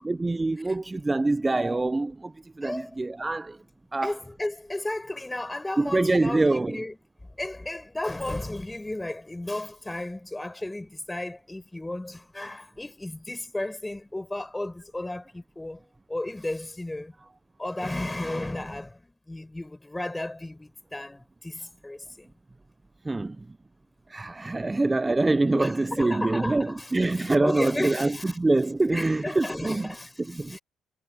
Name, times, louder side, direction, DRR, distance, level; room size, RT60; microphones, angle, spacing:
voice 1, 0.0-2.3 2.6-3.6 3.9-4.1 5.8-6.8 23.0-23.5 24.1-29.9 30.2-30.6, right 2 dB, 20° right, 0.6 m, -25 dB
voice 2, 2.6-3.0 4.0-7.0 7.3-15.8 16.1-17.1 17.6-22.3 24.6-24.8 25.5-28.4 28.9-30.6, left 1 dB, 10° left, 6.7 m, -34 dB
supercardioid pair, 80°, 0 cm